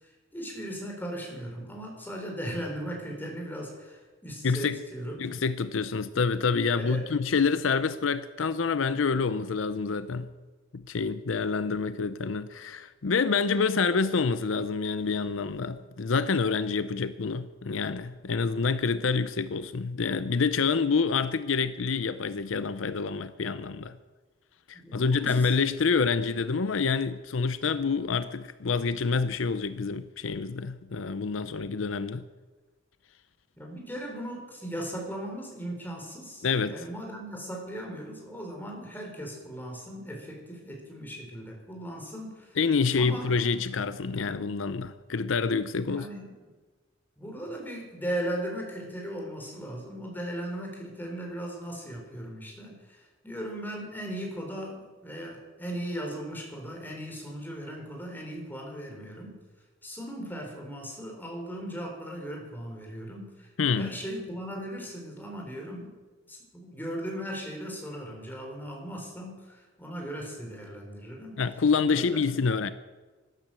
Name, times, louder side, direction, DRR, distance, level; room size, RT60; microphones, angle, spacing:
voice 1, 0.3-5.3 6.7-7.0 24.7-25.5 33.6-42.6 42.9-43.3 45.8-46.4 47.2-59.4 59.8-63.5 63.8-66.0 66.3-71.4 71.9-72.2, equal, 10° left, 0 dB, 4.1 m, -38 dB
voice 2, 4.4-4.8 5.2-10.3 10.7-24.0 24.7-32.2 36.4-36.8 42.6-46.1 63.6-63.9 71.4-72.7, left 5 dB, 75° left, 13 dB, 0.6 m, -27 dB
13.5 x 12.0 x 7.6 m, 1.3 s
head